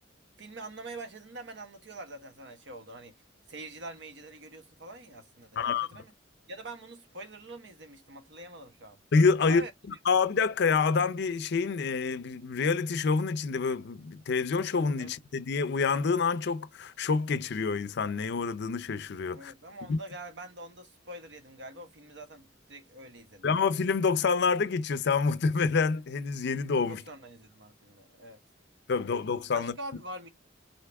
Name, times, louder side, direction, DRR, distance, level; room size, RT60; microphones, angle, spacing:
voice 1, 0.4-3.2 3.5-6.1 6.5-9.0 9.4-9.7 15.0-15.1 19.3-23.5 26.9-28.4 29.5-30.3, right 2 dB, 70° right, 1.0 m, -44 dB
voice 2, 5.6-5.9 9.1-9.7 10.0-19.5 19.9-20.0 23.4-27.0 28.9-29.7, left 5 dB, 60° left, 0.5 m, -27 dB
4.6 x 2.7 x 3.4 m
head